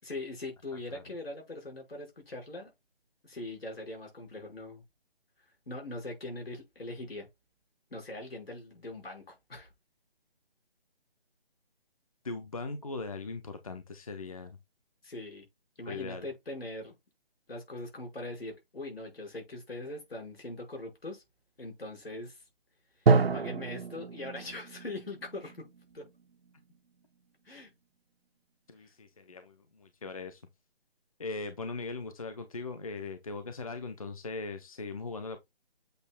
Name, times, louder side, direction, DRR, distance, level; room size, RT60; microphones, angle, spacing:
voice 1, 0.0-2.7 3.2-4.8 5.7-7.3 7.9-9.7 15.0-15.5 15.8-17.0 17.5-21.2 21.6-22.4 23.0-23.1 23.3-25.7 25.9-26.1 27.5-27.7 28.8-28.9, left 2 dB, 70° left, 5.3 m, -41 dB
voice 2, 12.2-14.6 15.9-16.3 28.7-30.4 31.2-35.4, left 3 dB, 35° left, 0.7 m, -39 dB
Drum, 23.1-26.8, right 4 dB, 75° right, 0.9 m, -29 dB
7.9 x 6.5 x 2.2 m
hypercardioid pair, 170°, 31 cm